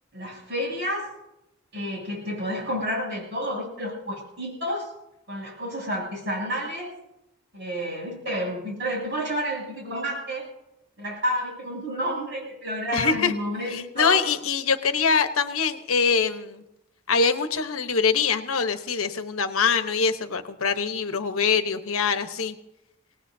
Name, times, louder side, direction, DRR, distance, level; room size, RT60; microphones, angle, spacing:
voice 1, 0.1-1.1 1.7-4.9 5.3-6.9 7.5-10.4 11.0-14.2, equal, 55° right, -2 dB, 7.9 m, -30 dB
voice 2, 12.9-13.3 13.7-16.6 17.1-22.6, left 5 dB, 85° left, 9 dB, 1.0 m, -24 dB
24.5 x 18.5 x 2.7 m, 0.88 s
head